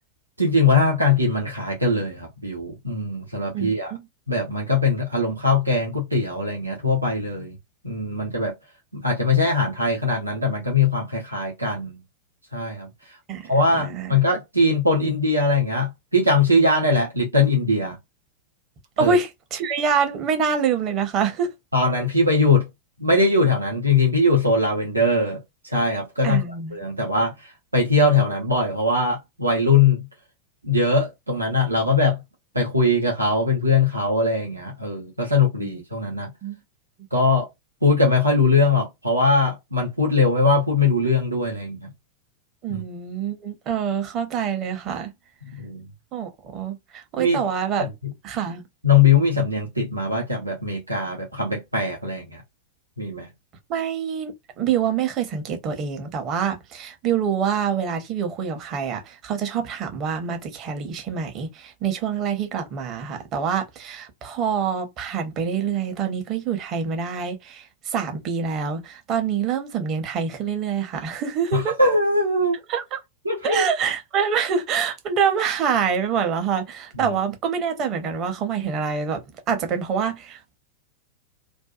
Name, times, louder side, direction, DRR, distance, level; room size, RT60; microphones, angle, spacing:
voice 1, 0.4-3.9 4.3-7.6 7.8-8.5 8.9-11.9 12.5-12.9 13.5-18.0 19.0-19.2 21.7-22.7 23.0-25.4 25.7-26.4 26.7-27.3 27.7-30.1 30.6-32.2 32.5-36.3 37.1-37.5 37.8-41.9 42.7-42.8 45.6-45.8 47.2-47.4 47.8-48.1 48.8-52.4 53.0-53.3 71.5-72.6 73.2-73.7 77.0-77.2, left 3 dB, 85° right, 0.8 m, -21 dB
voice 2, 3.5-4.0 13.3-14.2 19.0-21.5 26.2-26.8 35.6-35.7 36.4-36.6 42.6-45.1 46.1-47.9 48.2-48.6 53.7-71.7 72.7-73.0 73.4-79.2 79.5-80.6, right 7 dB, 35° right, 0.8 m, -26 dB
2.6 x 2.2 x 2.3 m
figure-of-eight pair, 90°, 0 cm